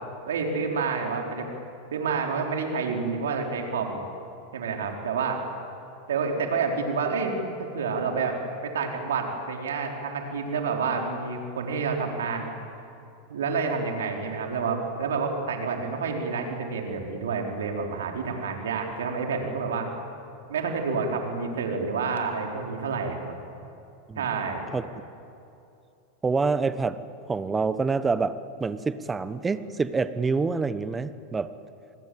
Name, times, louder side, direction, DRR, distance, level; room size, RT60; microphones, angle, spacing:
voice 1, 0.3-1.5 1.9-4.0 4.5-5.4 6.1-12.5 13.3-19.9 20.5-23.4 24.2-24.7, right 5 dB, 80° right, 2 dB, 4.0 m, -29 dB
voice 2, 26.2-27.0 27.3-31.5, right 4 dB, 15° right, 13 dB, 1.3 m, -27 dB
29.0 x 20.5 x 7.8 m, 2.7 s
hypercardioid pair, 95°, 0 cm